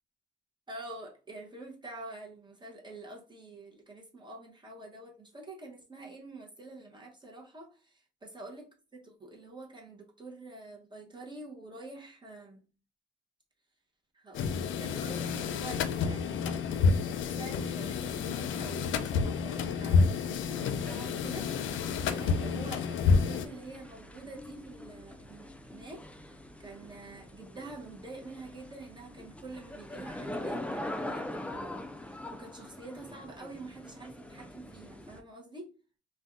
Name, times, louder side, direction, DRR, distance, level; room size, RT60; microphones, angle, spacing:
voice 1, 0.7-12.6 14.1-16.5 17.2-26.0 26.6-35.7, right 2 dB, 25° right, 0.8 m, -47 dB
sound 1, 14.3-23.5, left 5 dB, 75° left, 0.4 m, -29 dB
sound 2, 20.5-35.2, left 1 dB, 5° left, 0.4 m, -43 dB
2.5 x 2.2 x 3.6 m
cardioid pair, 90°, 20 cm